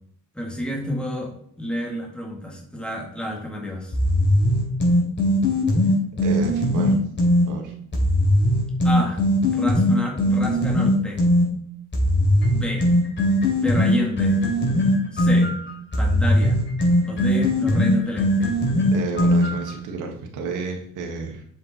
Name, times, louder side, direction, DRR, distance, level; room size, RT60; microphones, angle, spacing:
voice 1, 0.4-3.9 8.8-11.2 12.5-12.9 13.6-14.4 15.1-15.6 16.0-16.6 17.1-18.6, equal, 5° left, 0 dB, 2.1 m, -29 dB
sound 1, 3.9-7.5 7.9-11.5 11.9-19.7, left 1 dB, 40° left, 3.3 m, -19 dB
voice 2, 6.2-7.0 7.5-7.7 18.9-21.4, right 4 dB, 85° right, 1 dB, 1.5 m, -31 dB
7.5 x 5.3 x 4.2 m, 0.66 s
cardioid pair, 90°, 30 cm